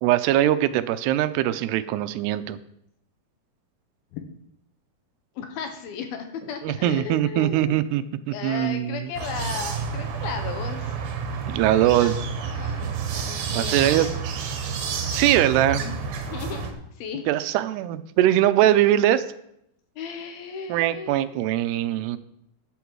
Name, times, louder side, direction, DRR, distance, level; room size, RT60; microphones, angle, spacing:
voice 1, 0.0-2.6 6.6-9.1 11.5-12.2 13.6-14.1 15.1-15.8 17.3-19.3 20.7-22.2, right 13 dB, 85° right, 12 dB, 2.7 m, -21 dB
voice 2, 5.4-7.8 8.3-11.0 12.0-12.1 12.4-14.1 15.7-16.0 16.3-17.3 20.0-21.2, left 6 dB, 70° left, 6 dB, 2.8 m, -35 dB
sound 1, 9.1-16.7, right 5 dB, 70° right, 2.8 m, -29 dB
12.0 x 9.2 x 4.7 m, 0.76 s
omnidirectional pair, 4.7 m